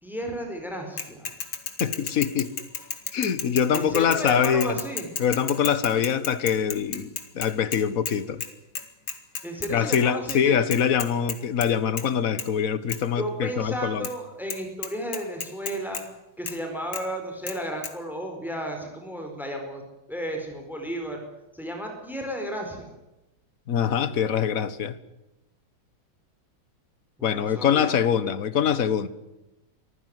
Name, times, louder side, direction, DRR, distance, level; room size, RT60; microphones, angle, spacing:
voice 1, 0.0-1.3 3.7-5.1 9.4-10.6 13.1-16.0 16.4-19.8 20.1-21.2 21.5-23.0 27.2-28.0, equal, ahead, 3 dB, 4.6 m, -33 dB
Bicycle / Mechanisms, 1.0-8.1 8.4-8.5 8.7-10.0 10.3-10.4 10.7-11.7 12.0-12.1 12.4-12.5 12.9-13.0 14.0-14.1 14.5-14.6 14.8-16.0 16.5-16.6 16.9-17.0 17.5-17.6 17.8-17.9, left 6 dB, 75° left, 2.9 m, -33 dB
voice 2, 1.8-2.5 3.1-4.8 5.2-8.4 9.7-14.1 23.7-25.0 27.2-29.1, left 8 dB, 45° left, 14 dB, 1.6 m, -24 dB
24.5 x 15.0 x 9.5 m, 0.97 s
omnidirectional pair, 2.2 m